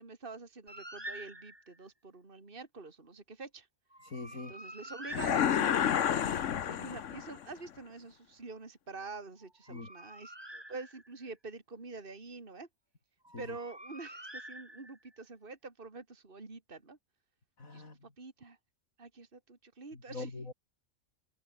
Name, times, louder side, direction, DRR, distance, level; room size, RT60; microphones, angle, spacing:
voice 1, 0.0-3.7 4.3-12.7 13.4-17.0 17.7-17.9 18.2-18.6 19.0-20.3, right 3 dB, 40° right, 2.8 m, -47 dB
Bird, 0.7-1.8 3.9-6.0 9.4-11.3 13.3-15.2, right 1 dB, 20° right, 5.0 m, -48 dB
voice 2, 4.0-4.5 9.7-9.9 13.3-13.4 17.6-18.0 20.1-20.5, left 3 dB, 90° left, 4.3 m, -42 dB
sound 1, 5.1-7.4, left 9 dB, 65° left, 1.3 m, -30 dB
open air
omnidirectional pair, 1.4 m